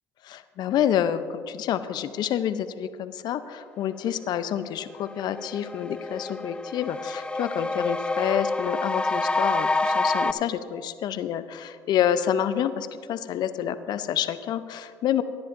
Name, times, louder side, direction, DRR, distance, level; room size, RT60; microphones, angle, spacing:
voice 1, 0.3-15.2, left 10 dB, 60° left, 12 dB, 0.6 m, -28 dB
sound 1, 4.5-4.6 5.0-10.3, left 2 dB, 10° left, 0.4 m, -27 dB
17.5 x 10.5 x 2.6 m, 2.2 s
supercardioid pair, 70°, 8 cm